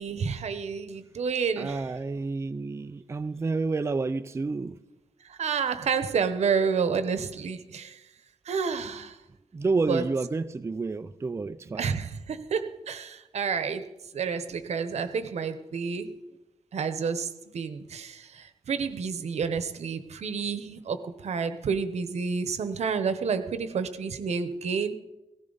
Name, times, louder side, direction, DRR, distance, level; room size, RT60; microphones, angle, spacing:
voice 1, 0.0-1.8 5.2-8.0 8.5-9.2 9.9-10.1 11.7-16.2 16.7-24.9, right 6 dB, 85° right, 1.0 m, -30 dB
voice 2, 1.6-4.8 9.5-11.9, right 3 dB, 25° right, 0.4 m, -29 dB
17.5 x 17.0 x 4.0 m
wide cardioid pair, 145°, 11 cm